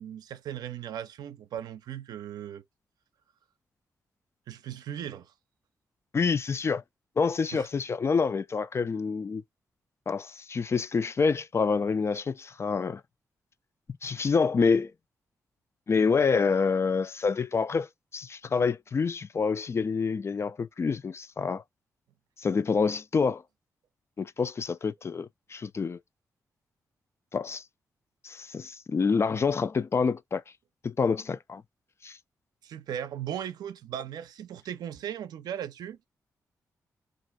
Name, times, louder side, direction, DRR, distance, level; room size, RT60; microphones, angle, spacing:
voice 1, 0.0-2.6 4.5-5.3 7.5-7.7 32.6-36.0, right 10 dB, 85° right, 0.5 m, -37 dB
voice 2, 6.1-6.8 7.2-9.4 10.1-13.0 14.0-14.9 15.9-21.6 22.4-23.4 24.2-26.0 27.3-27.6 28.2-30.4 30.8-31.6 32.0-32.2, left 5 dB, 40° left, 0.3 m, -27 dB
2.6 x 2.1 x 4.0 m
cardioid pair, 55°, 7 cm